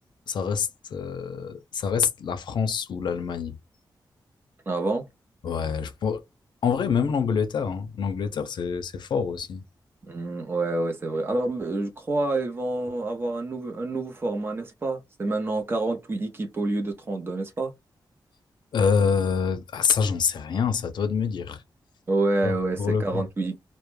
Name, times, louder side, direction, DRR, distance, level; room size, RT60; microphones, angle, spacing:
voice 1, 0.3-3.6 5.4-6.2 6.6-9.6 18.7-21.6 22.4-23.2, left 6 dB, 70° left, 0.5 m, -26 dB
voice 2, 4.7-5.1 10.0-17.7 22.1-23.6, right 2 dB, 30° right, 0.5 m, -28 dB
2.1 x 2.1 x 3.0 m
wide cardioid pair, 175°, 8 cm